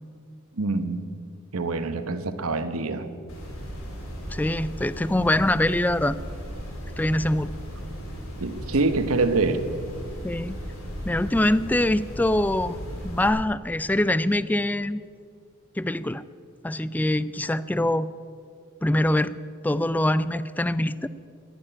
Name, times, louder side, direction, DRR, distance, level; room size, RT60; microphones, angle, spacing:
voice 1, 0.6-1.0 1.5-3.1 8.4-9.6, right 3 dB, 85° right, 10 dB, 1.0 m, -25 dB
sound 1, 3.3-13.3, equal, 80° left, 3.2 m, -36 dB
voice 2, 4.3-6.2 7.0-7.5 10.2-10.6 11.0-12.8 13.0-15.0 15.8-16.2 16.6-18.1 18.8-19.3 19.6-21.1, left 1 dB, 10° left, 16 dB, 0.3 m, -24 dB
11.0 x 11.0 x 9.9 m, 2.3 s
head